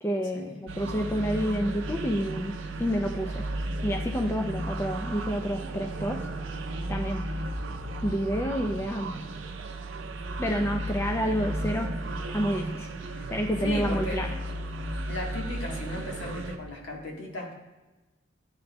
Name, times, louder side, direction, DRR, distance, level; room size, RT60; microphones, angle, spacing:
voice 1, 0.0-2.5 2.8-3.4 3.8-6.2 6.9-7.2 8.0-9.2 10.4-11.9 12.3-12.9 13.3-14.3, equal, 15° left, 3 dB, 0.3 m, -29 dB
sound 1, 0.7-16.6, right 1 dB, 80° right, 0.5 m, -34 dB
voice 2, 13.6-14.3 15.1-17.5, left 2 dB, 80° left, -1 dB, 1.4 m, -36 dB
12.0 x 4.0 x 2.2 m, 1.1 s
head